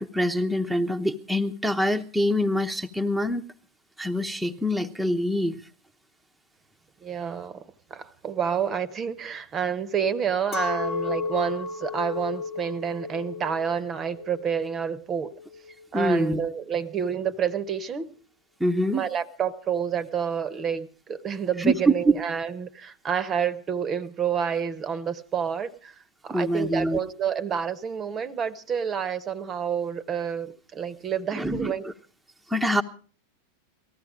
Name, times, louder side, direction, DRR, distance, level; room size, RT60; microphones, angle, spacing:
voice 1, 0.0-3.5 4.0-5.6 15.9-16.4 18.6-19.1 21.6-22.1 26.3-27.0 31.3-31.9 32.5-32.8, equal, ahead, 2 dB, 0.9 m, -25 dB
voice 2, 7.0-7.6 7.9-15.3 15.9-18.1 18.9-25.9 26.2-31.9, right 7 dB, 25° right, 17 dB, 0.9 m, -29 dB
Chink clink, 10.5-16.0, left 4 dB, 30° left, 1.0 m, -33 dB
19.0 x 14.5 x 5.0 m, 0.40 s
figure-of-eight pair, 90°, 0 cm